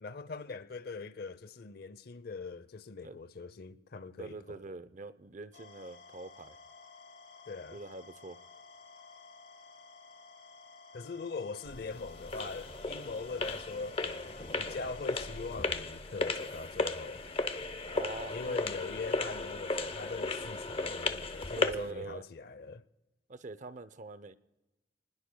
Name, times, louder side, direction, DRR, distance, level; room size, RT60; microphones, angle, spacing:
voice 1, 0.0-4.6 7.5-7.8 10.9-17.2 18.3-22.8, left 4 dB, 60° left, 0.7 m, -42 dB
voice 2, 4.2-6.6 7.7-8.4 17.9-18.6 21.5-22.2 23.3-24.3, right 2 dB, 45° right, 0.7 m, -44 dB
sound 1, 5.5-15.6, left 4 dB, 90° left, 3.7 m, -54 dB
sound 2, 11.6-21.9, left 3 dB, 30° left, 0.8 m, -35 dB
29.5 x 20.0 x 2.3 m
head